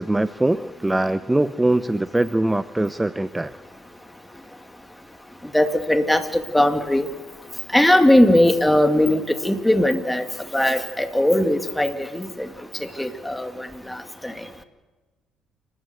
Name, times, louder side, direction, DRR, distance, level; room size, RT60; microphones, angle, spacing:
voice 1, 0.0-3.5, right 1 dB, 10° right, 14 dB, 0.6 m, -22 dB
voice 2, 5.5-7.1 7.7-10.2 10.5-12.5 13.0-14.3, left 1 dB, 5° left, 7 dB, 2.2 m, -19 dB
29.5 x 13.0 x 8.0 m, 1.2 s
supercardioid pair, 65°, 0 cm